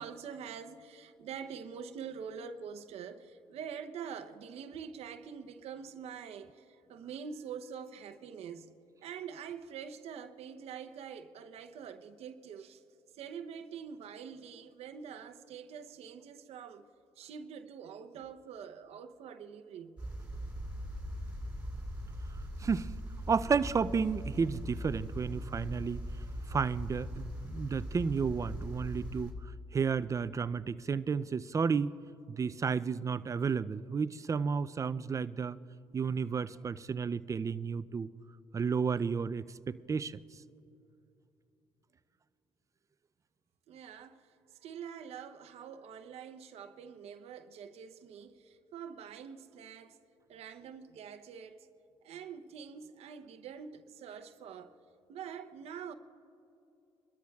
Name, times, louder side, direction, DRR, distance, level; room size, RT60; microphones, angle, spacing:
voice 1, 0.0-8.7 9.0-12.8 13.2-16.9 17.2-20.0 43.7-50.0 50.3-51.7 52.0-54.8 55.1-55.9, right 7 dB, 70° right, 0.7 m, -45 dB
sound 1, 20.0-29.3, equal, 15° right, 2.6 m, -40 dB
voice 2, 22.6-22.9 23.3-26.0 26.5-29.4 29.7-31.9 32.3-35.6 35.9-38.1 38.5-40.2, right 5 dB, 30° right, 0.4 m, -32 dB
25.5 x 13.0 x 2.3 m
cardioid pair, 85°, 11 cm